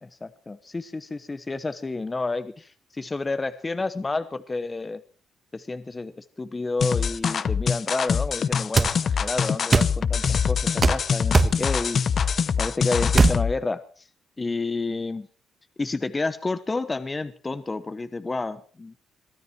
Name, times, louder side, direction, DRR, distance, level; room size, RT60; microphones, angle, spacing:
voice 1, 0.0-5.0 5.5-12.0 12.6-14.1 14.4-15.3 15.8-18.9, left 3 dB, 25° left, 12 dB, 1.0 m, -30 dB
sound 1, 6.8-13.5, left 6 dB, 50° left, 0.8 m, -24 dB
sound 2, 8.8-8.9 9.7-9.9 10.8-11.0 11.3-11.6 13.1-13.4, right 4 dB, 30° right, 1.3 m, -18 dB
23.0 x 13.5 x 4.6 m, 0.42 s
cardioid pair, 90°, 0 cm